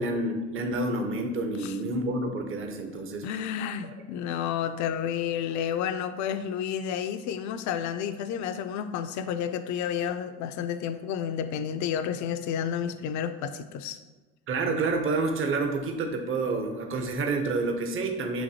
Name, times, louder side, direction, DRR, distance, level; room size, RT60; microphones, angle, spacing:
voice 1, 0.0-3.3 14.5-18.4, right 3 dB, 35° right, 4 dB, 0.7 m, -28 dB
voice 2, 3.2-14.0, left 8 dB, 55° left, 9 dB, 0.5 m, -31 dB
7.0 x 2.6 x 2.8 m, 1.2 s
hypercardioid pair, 60°, 34 cm